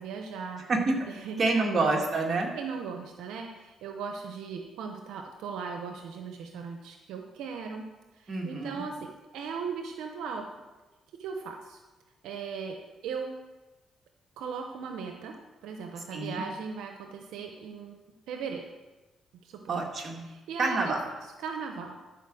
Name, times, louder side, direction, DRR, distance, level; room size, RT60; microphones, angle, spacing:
voice 1, 0.0-0.6 1.1-1.8 2.5-10.5 11.2-11.8 12.2-13.3 14.4-15.3 15.6-18.0 18.3-18.6 19.4-19.8 20.3-21.0 21.4-22.0, right 5 dB, 90° right, 4 dB, 0.8 m, -38 dB
voice 2, 1.4-2.5 8.3-8.8 16.1-16.4 19.7-20.2 20.6-21.0, right 3 dB, 45° right, 0 dB, 2.1 m, -27 dB
12.0 x 5.1 x 6.2 m, 1.1 s
cardioid pair, 90°, 0 cm